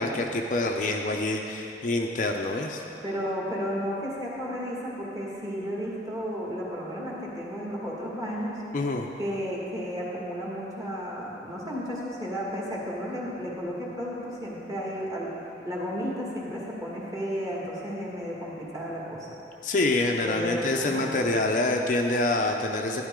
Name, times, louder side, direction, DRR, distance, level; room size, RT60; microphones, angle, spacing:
voice 1, 0.0-2.8 8.7-9.1 19.6-23.1, left 2 dB, 45° left, 2 dB, 0.6 m, -26 dB
voice 2, 3.0-8.6 9.2-15.3 15.6-19.3 20.3-21.1, equal, 20° right, -5 dB, 1.9 m, -33 dB
12.0 x 10.5 x 3.7 m, 2.8 s
head